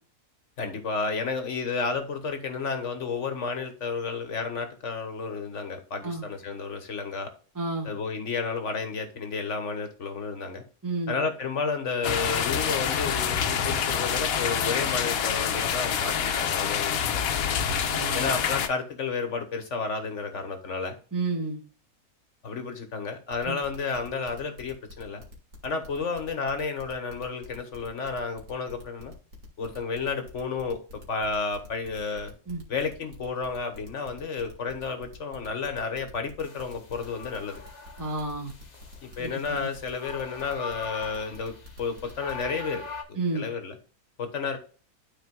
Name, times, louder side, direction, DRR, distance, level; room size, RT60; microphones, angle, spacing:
voice 1, 0.6-7.3 7.8-10.6 11.1-17.2 18.1-21.0 22.4-25.2 25.6-29.1 29.6-30.8 31.1-32.3 32.7-37.6 39.0-43.8 44.2-44.6, left 4 dB, 55° left, 6 dB, 1.4 m, -31 dB
voice 2, 7.5-7.9 10.8-11.1 17.7-18.3 21.1-21.6 23.4-23.6 32.5-32.6 38.0-38.5 39.2-39.7 43.1-43.4, right 3 dB, 10° right, 0 dB, 1.5 m, -31 dB
sound 1, 12.0-18.7, left 8 dB, 70° left, 1.1 m, -27 dB
sound 2, 23.3-42.5, left 2 dB, 65° right, 2.3 m, -47 dB
sound 3, 36.4-43.0, left 4 dB, 30° left, 1.1 m, -43 dB
12.5 x 4.4 x 2.3 m, 0.40 s
omnidirectional pair, 1.6 m